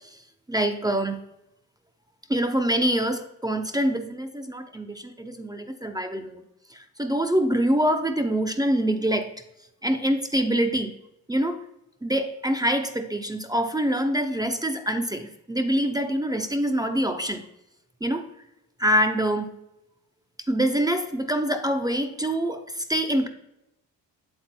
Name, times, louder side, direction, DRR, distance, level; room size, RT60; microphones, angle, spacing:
voice 1, 0.5-1.2 2.3-6.4 7.0-9.3 9.8-10.9 11.3-11.6 12.0-17.4 18.0-18.3 18.8-19.5 20.5-23.3, right 1 dB, 10° right, 7 dB, 0.6 m, -25 dB
7.9 x 7.8 x 2.2 m, 0.85 s
cardioid pair, 70°, 36 cm